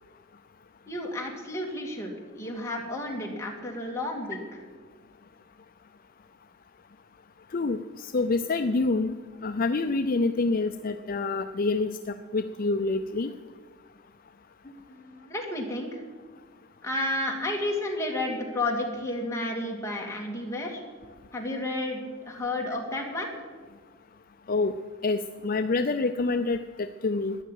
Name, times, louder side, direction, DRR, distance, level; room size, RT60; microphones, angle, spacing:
voice 1, 0.9-4.4 14.6-16.0 16.8-20.8 21.3-23.3, left 1 dB, 15° left, -1 dB, 2.7 m, -32 dB
voice 2, 7.5-9.1 9.4-13.3 24.5-24.7 25.0-27.4, left 3 dB, 45° left, 8 dB, 0.5 m, -27 dB
13.0 x 10.0 x 9.1 m, 1.5 s
head